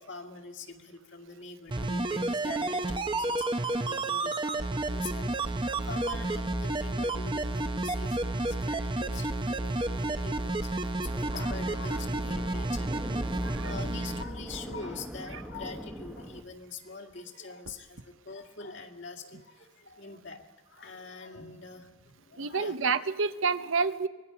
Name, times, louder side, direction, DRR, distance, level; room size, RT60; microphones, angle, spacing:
voice 1, 0.0-22.8, left 4 dB, 60° left, 2 dB, 2.1 m, -44 dB
sound 1, 1.7-14.2 14.5-14.6, right 2 dB, 25° right, 0.8 m, -31 dB
sound 2, 11.0-16.4, equal, 10° right, 1.1 m, -42 dB
voice 2, 13.4-14.0 22.4-24.1, right 5 dB, 80° right, 11 dB, 0.8 m, -29 dB
24.5 x 20.5 x 5.8 m, 1.3 s
head